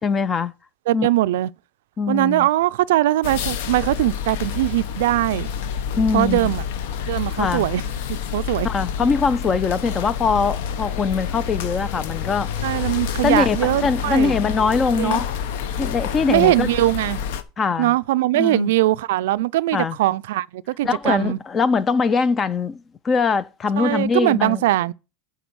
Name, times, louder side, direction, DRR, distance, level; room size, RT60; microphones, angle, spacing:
voice 1, 0.0-0.5 0.9-1.1 2.0-2.5 6.0-6.5 7.3-7.7 8.6-12.5 13.2-15.3 15.8-16.7 17.6-18.0 18.3-18.7 19.7-20.0 20.8-24.6, left 5 dB, 20° left, 0.3 m, -22 dB
voice 2, 0.9-1.5 2.1-5.5 6.1-6.6 7.1-7.8 8.3-8.7 12.6-14.3 15.0-15.2 16.3-17.2 17.8-21.4 23.8-24.9, right 16 dB, 80° right, 0.3 m, -21 dB
sound 1, 3.2-17.4, left 8 dB, 65° left, 0.8 m, -28 dB
9.4 x 3.9 x 6.1 m
supercardioid pair, 165°, 0 cm